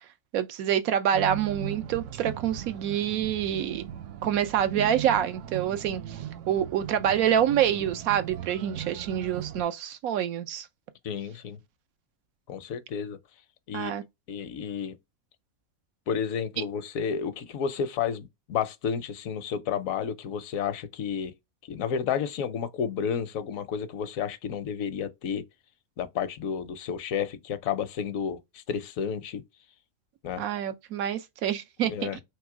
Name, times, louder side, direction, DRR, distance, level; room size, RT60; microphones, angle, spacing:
voice 1, 0.3-3.8 4.2-10.7 13.7-14.0 30.4-31.9, right 10 dB, 90° right, 1.1 m, -27 dB
sound 1, 1.1-9.6, right 11 dB, 70° right, 0.9 m, -38 dB
voice 2, 11.0-11.6 12.5-13.2 13.7-15.0 16.1-21.3 21.6-25.4 26.0-29.4 30.2-30.4 31.8-32.2, left 7 dB, 75° left, 1.1 m, -31 dB
3.6 x 3.1 x 4.7 m
omnidirectional pair, 1.4 m